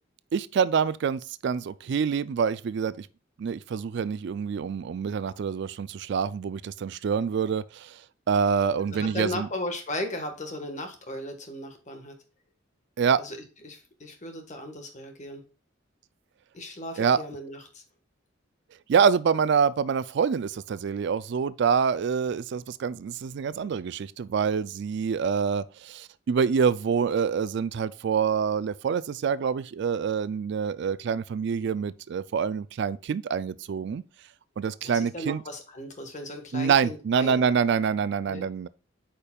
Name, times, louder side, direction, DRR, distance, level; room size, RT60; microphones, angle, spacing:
voice 1, 0.3-3.1 3.4-8.0 8.3-9.5 13.0-13.2 17.0-17.2 18.9-34.0 34.6-35.4 36.5-38.7, right 6 dB, 65° right, 0.4 m, -26 dB
voice 2, 8.9-12.2 13.2-13.4 13.6-15.4 16.5-17.8 34.8-37.4 38.3-38.5, left 1 dB, 40° left, 1.4 m, -36 dB
8.6 x 5.2 x 2.3 m
head